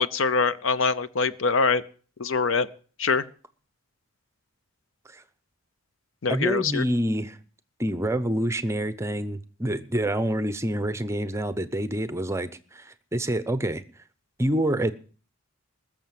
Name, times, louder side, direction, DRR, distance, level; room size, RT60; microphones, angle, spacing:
voice 1, 0.0-1.8 2.2-2.7 3.0-3.2 6.2-6.8, left 4 dB, 70° left, 15 dB, 0.7 m, -24 dB
voice 2, 6.3-7.4 7.8-13.8 14.4-14.9, right 1 dB, 15° right, 13 dB, 0.7 m, -27 dB
20.0 x 7.2 x 7.6 m, 0.41 s
head